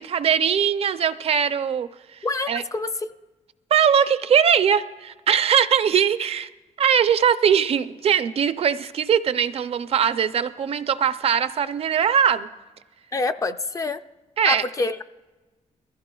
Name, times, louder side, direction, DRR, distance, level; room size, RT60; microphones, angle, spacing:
voice 1, 0.0-2.2 2.5-2.6 3.7-6.5 6.8-12.5 14.4-14.6, right 8 dB, 50° right, 12 dB, 0.4 m, -21 dB
voice 2, 2.2-3.1 13.1-14.0 14.5-15.0, left 3 dB, 25° left, 9 dB, 0.4 m, -26 dB
22.0 x 15.0 x 2.3 m, 1.2 s
wide cardioid pair, 170°, 13 cm